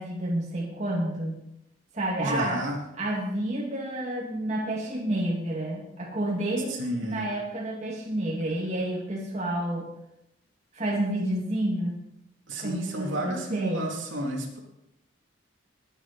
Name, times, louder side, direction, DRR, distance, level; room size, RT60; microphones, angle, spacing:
voice 1, 0.0-1.4 1.9-2.6 3.0-9.9 10.7-12.0 12.6-13.9, right 1 dB, 35° right, -2 dB, 2.3 m, -30 dB
voice 2, 2.2-2.8 6.7-7.3 12.5-14.6, right 1 dB, 70° right, 0 dB, 3.1 m, -31 dB
20.5 x 9.0 x 4.2 m, 0.81 s
head